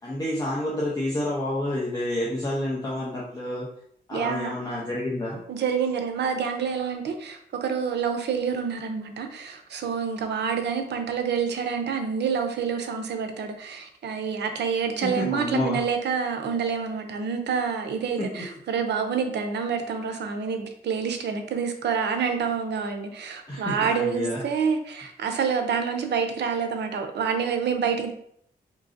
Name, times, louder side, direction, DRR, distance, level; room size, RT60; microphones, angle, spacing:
voice 1, 0.0-3.7 4.1-5.4 15.0-15.8 18.2-18.4 23.5-24.4, left 1 dB, 20° left, -6 dB, 0.7 m, -29 dB
voice 2, 4.1-4.5 5.5-28.1, right 6 dB, 90° right, 6 dB, 0.5 m, -27 dB
3.7 x 3.0 x 2.6 m, 0.68 s
wide cardioid pair, 135°, 17 cm